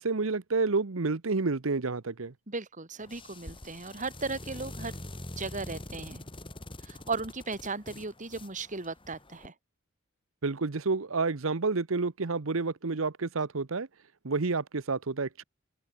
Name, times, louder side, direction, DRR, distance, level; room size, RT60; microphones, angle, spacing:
voice 1, 0.0-2.3 10.4-13.9 14.2-15.4, right 3 dB, 75° right, 0.9 m, -29 dB
voice 2, 2.5-4.9 5.4-6.3 6.8-9.5, right 3 dB, 40° right, 2.6 m, -36 dB
sound 1, 3.0-9.5, left 1 dB, 25° left, 4.4 m, -44 dB
open air
head